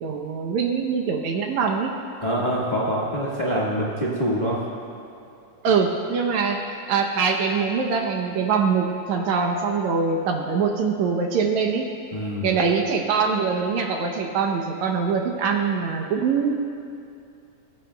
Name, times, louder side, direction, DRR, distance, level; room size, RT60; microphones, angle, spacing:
voice 1, 0.0-1.9 5.6-6.6 6.9-11.9 12.4-16.5, right 5 dB, 70° right, 2 dB, 2.0 m, -23 dB
voice 2, 2.2-4.6 12.1-12.5, equal, 35° left, -6 dB, 0.7 m, -25 dB
25.0 x 15.5 x 2.3 m, 2.6 s
omnidirectional pair, 3.7 m